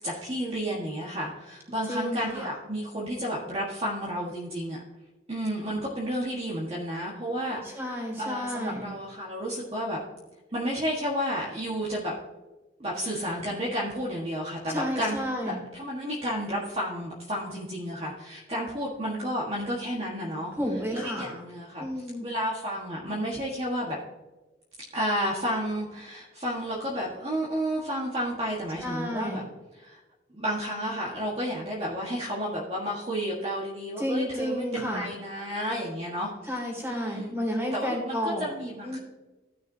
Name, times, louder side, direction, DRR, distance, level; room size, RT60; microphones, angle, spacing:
voice 1, 0.0-4.8 5.3-10.0 10.5-12.1 12.8-20.5 20.9-24.0 24.9-29.4 29.7-30.0 30.3-36.6 36.9-37.3 37.7-39.0, equal, 30° right, -5 dB, 1.6 m, -31 dB
voice 2, 1.9-2.5 7.7-8.9 14.7-15.6 20.5-21.4 21.8-22.3 28.8-29.4 34.0-35.1 36.5-38.5 38.8-39.0, equal, 15° right, 0 dB, 3.0 m, -31 dB
15.5 x 6.3 x 2.8 m, 1.1 s
head